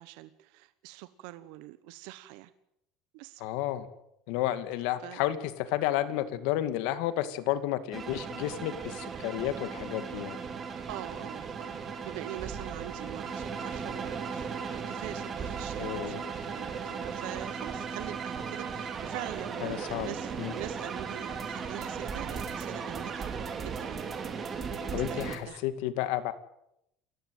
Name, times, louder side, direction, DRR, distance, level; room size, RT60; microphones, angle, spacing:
voice 1, 0.0-2.5 3.1-3.4 5.0-5.2 10.9-23.3 23.6-24.1 25.1-25.6, right 16 dB, 70° right, 13 dB, 1.1 m, -44 dB
voice 2, 3.4-3.9 4.3-10.4 15.8-16.2 19.6-20.1 20.4-20.5 24.9-26.3, left 13 dB, 70° left, 12 dB, 2.2 m, -31 dB
sound 1, 7.9-25.4, right 6 dB, 20° right, 2.9 m, -37 dB
28.5 x 15.0 x 9.3 m, 0.81 s
cardioid pair, 175°, 0 cm